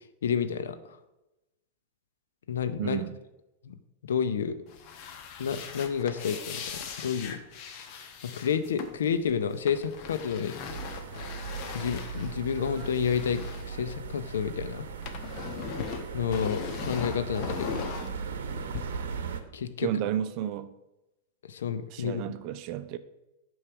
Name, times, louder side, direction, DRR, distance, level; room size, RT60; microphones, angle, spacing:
voice 1, 0.2-1.0 2.5-3.0 3.6-3.8 4.0-4.6 5.4-7.4 8.2-10.6 10.9-11.0 11.7-14.9 16.1-17.8 19.5-19.9 21.4-22.2, left 7 dB, 80° left, 0.6 m, -30 dB
voice 2, 2.8-3.2 19.8-20.7 21.9-23.0, right 11 dB, 50° right, 0.5 m, -32 dB
sound 1, 4.7-14.5 14.7-18.8, left 7 dB, 50° left, 0.9 m, -40 dB
sound 2, 10.7-19.4, right 6 dB, 75° right, 0.8 m, -38 dB
8.5 x 3.2 x 6.0 m
hypercardioid pair, 105°, 0 cm